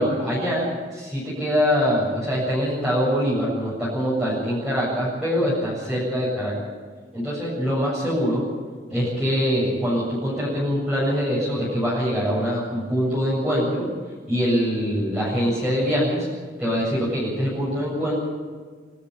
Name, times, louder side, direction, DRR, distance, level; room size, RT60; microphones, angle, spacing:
voice 1, 0.0-6.5 7.1-8.5 8.9-13.9 14.3-16.3 16.6-18.2, equal, 5° right, -9 dB, 7.7 m, -23 dB
26.5 x 13.0 x 8.5 m, 1.5 s
head